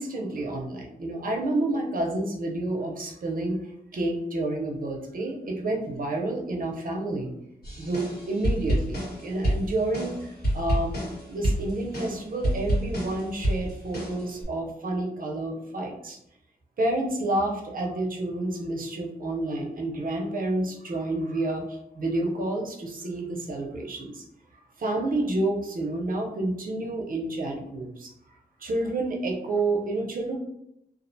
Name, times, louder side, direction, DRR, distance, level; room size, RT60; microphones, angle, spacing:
voice 1, 0.0-3.6 3.9-7.3 7.8-11.0 11.3-16.2 16.8-24.2 24.8-28.1 28.6-30.4, right 2 dB, 60° right, 0 dB, 0.6 m, -29 dB
sound 1, 7.6-14.4, equal, 80° left, 1.3 m, -29 dB
2.3 x 2.1 x 2.6 m, 0.80 s
wide cardioid pair, 85°, 16 cm